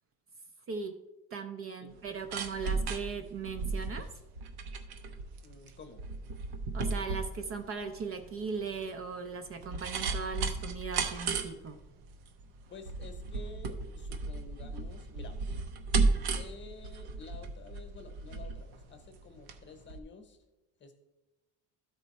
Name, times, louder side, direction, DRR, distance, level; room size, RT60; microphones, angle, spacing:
voice 1, 0.7-1.0 1.3-4.1 6.7-11.8, right 5 dB, 35° right, 7 dB, 0.5 m, -38 dB
sound 1, 1.9-19.6 19.9-20.0, right 4 dB, 70° right, 0.9 m, -35 dB
voice 2, 5.4-6.1 12.7-15.4 16.3-20.4 20.8-20.9, left 3 dB, 30° left, 7 dB, 1.0 m, -50 dB
12.5 x 4.5 x 4.1 m, 1.0 s
cardioid pair, 140°, 40 cm